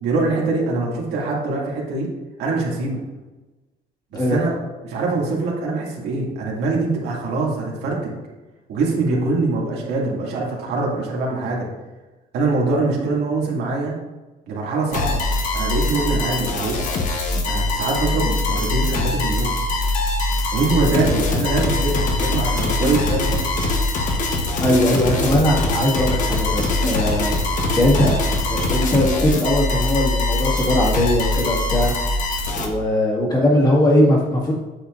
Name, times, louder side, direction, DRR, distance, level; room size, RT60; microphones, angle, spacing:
voice 1, 0.0-2.1 2.4-3.0 4.1-4.6 4.8-8.1 8.7-11.7 12.3-13.9 14.5-15.2 15.5-16.8 17.5-19.5 20.5-23.6, right 3 dB, 90° right, -3 dB, 2.4 m, -23 dB
sound 1, 14.9-32.7, left 2 dB, 50° left, 1.1 m, -22 dB
voice 2, 24.6-27.3 27.8-28.2 28.5-31.9 32.6-34.5, left 1 dB, 25° left, -4 dB, 1.9 m, -19 dB
8.9 x 7.3 x 2.6 m, 1.2 s
cardioid pair, 165°, 17 cm